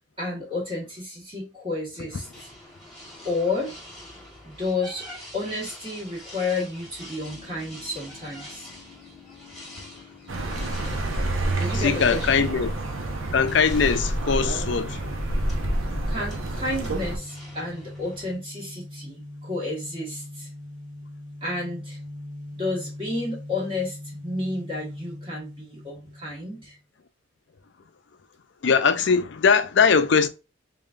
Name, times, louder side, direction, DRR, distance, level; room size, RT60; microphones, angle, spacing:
voice 1, 0.2-2.3 3.2-3.8 4.4-5.1 5.3-8.7 11.6-12.5 16.1-20.5 21.4-22.0 22.5-26.8, left 2 dB, 25° right, 1.5 m, -31 dB
sound 1, 2.1-18.4, left 1 dB, 5° left, 1.6 m, -45 dB
Accelerating revving vroom, 10.3-17.2, right 1 dB, 85° right, 0.9 m, -28 dB
voice 2, 10.5-11.2 11.7-12.7 13.3-15.2 28.6-30.3, left 5 dB, 60° left, 0.5 m, -21 dB
sound 2, 12.2-26.8, left 1 dB, 65° right, 1.5 m, -42 dB
3.7 x 3.7 x 2.5 m
head